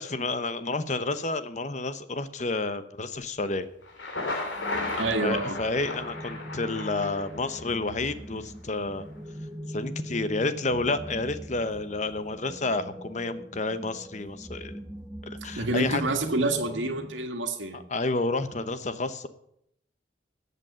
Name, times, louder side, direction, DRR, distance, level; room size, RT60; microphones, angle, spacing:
voice 1, 0.0-3.7 5.2-9.0 9.7-14.7 15.2-16.0 17.7-19.3, left 3 dB, 40° left, 12 dB, 0.9 m, -30 dB
Thunder, 3.8-7.8, left 2 dB, 90° left, 3.0 m, -34 dB
sound 1, 4.5-17.2, equal, 10° right, 0.6 m, -42 dB
voice 2, 4.5-5.6 15.6-17.8, right 2 dB, 85° right, 4 dB, 2.0 m, -28 dB
14.0 x 8.3 x 7.6 m, 0.73 s
head